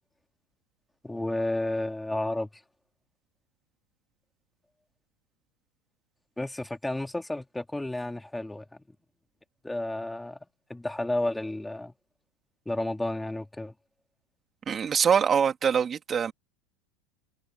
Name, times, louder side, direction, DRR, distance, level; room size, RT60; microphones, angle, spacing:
voice 1, 1.0-2.6 6.4-8.8 9.6-10.4 10.7-11.9 12.6-13.7, left 1 dB, 5° left, 3.1 m, -31 dB
voice 2, 14.7-16.3, right 7 dB, 30° right, 3.4 m, -24 dB
supercardioid pair, 110°, 0 cm